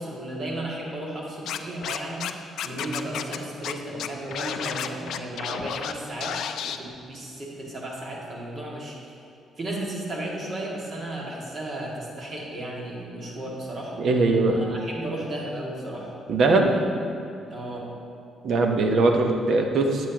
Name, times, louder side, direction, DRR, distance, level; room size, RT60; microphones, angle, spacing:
voice 1, 0.0-2.4 2.6-6.4 6.6-9.1 9.6-14.0 14.5-16.2 16.4-16.8 17.5-17.9, right 1 dB, 45° right, -3 dB, 2.0 m, -34 dB
Scratching (performance technique), 1.5-2.3 2.6-3.4 3.6-3.7 4.0-5.9 6.2-6.8, left 9 dB, 75° left, 0.3 m, -31 dB
voice 2, 14.0-14.6 16.3-16.7 18.4-20.1, right 3 dB, 65° right, 3 dB, 0.9 m, -21 dB
9.7 x 7.6 x 2.9 m, 2.5 s
cardioid pair, 90°, 0 cm